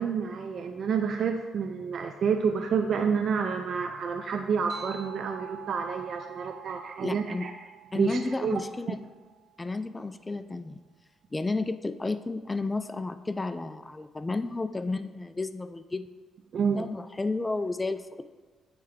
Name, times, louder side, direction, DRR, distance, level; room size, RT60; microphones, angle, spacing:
voice 1, 0.0-7.5 7.9-8.6 8.9-9.0 16.5-16.9, right 6 dB, 60° right, 5 dB, 0.3 m, -29 dB
sound 1, 4.7-9.7, right 9 dB, 90° right, 1.7 m, -47 dB
voice 2, 7.0-7.5 7.9-9.0 9.6-10.8 11.3-16.1 16.7-18.0, left 3 dB, 20° left, 11 dB, 0.3 m, -32 dB
8.7 x 3.3 x 3.5 m, 1.4 s
cardioid pair, 90°, 0 cm